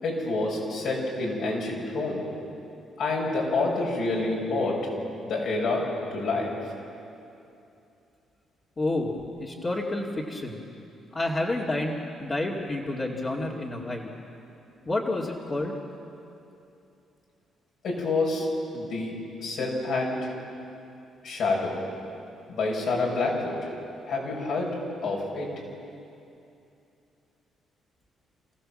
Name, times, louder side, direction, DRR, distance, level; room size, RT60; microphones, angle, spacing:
voice 1, 0.0-2.2 3.0-4.8 5.2-5.8 6.1-6.5 17.8-18.5 18.7-19.1 19.4-20.3 21.2-21.7 22.5-23.6 24.1-24.7 25.0-25.5, left 3 dB, 70° left, -2 dB, 6.5 m, -27 dB
voice 2, 8.8-10.6 11.1-14.1 14.9-15.7, left 2 dB, 35° left, -5 dB, 2.4 m, -29 dB
28.0 x 16.0 x 7.7 m, 2.7 s
cardioid pair, 90°, 0 cm